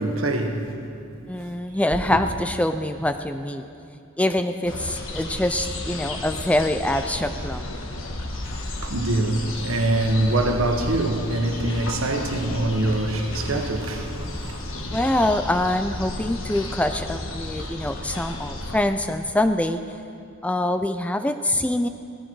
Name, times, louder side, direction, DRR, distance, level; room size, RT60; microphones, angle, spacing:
voice 1, 0.0-1.1 1.4-2.0 8.4-15.0, right 2 dB, 75° right, 1.5 m, -25 dB
voice 2, 1.3-3.6 4.2-7.7 14.9-19.8 20.4-21.9, left 1 dB, 5° left, 0.4 m, -24 dB
sound 1, 4.7-18.8, left 2 dB, 65° left, 1.4 m, -33 dB
17.5 x 14.0 x 4.8 m
head